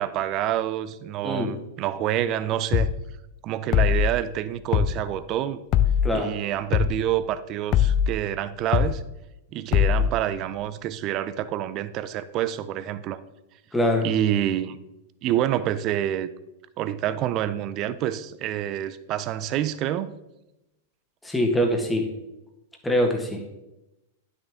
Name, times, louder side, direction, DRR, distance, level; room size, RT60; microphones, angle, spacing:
voice 1, 0.0-2.9 3.4-5.6 6.1-9.0 9.5-13.2 14.0-14.8 15.2-16.3 16.8-20.1, right 11 dB, 40° right, 13 dB, 0.5 m, -27 dB
voice 2, 1.2-1.5 6.0-6.3 13.7-14.1 21.2-22.1 22.8-23.4, left 1 dB, 10° left, 2 dB, 1.6 m, -23 dB
sound 1, 2.7-3.0 3.7-4.1 4.7-5.0 5.7-6.1 6.7-7.0 7.7-8.1 8.7-9.0 9.7-10.1, left 9 dB, 40° left, 0.6 m, -20 dB
10.0 x 6.3 x 3.6 m, 0.93 s
hypercardioid pair, 115°, 0 cm